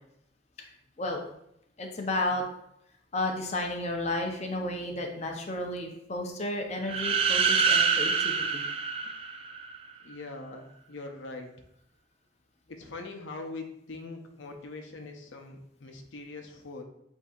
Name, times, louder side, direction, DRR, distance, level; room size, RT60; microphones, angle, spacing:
voice 1, 1.8-2.4 3.1-8.6, left 1 dB, 35° left, 2 dB, 0.5 m, -32 dB
sound 1, 6.8-9.8, right 5 dB, 30° right, 0.3 m, -26 dB
voice 2, 10.0-11.6 12.7-16.8, left 3 dB, 85° left, 4 dB, 0.6 m, -42 dB
8.0 x 2.7 x 2.4 m, 0.78 s
head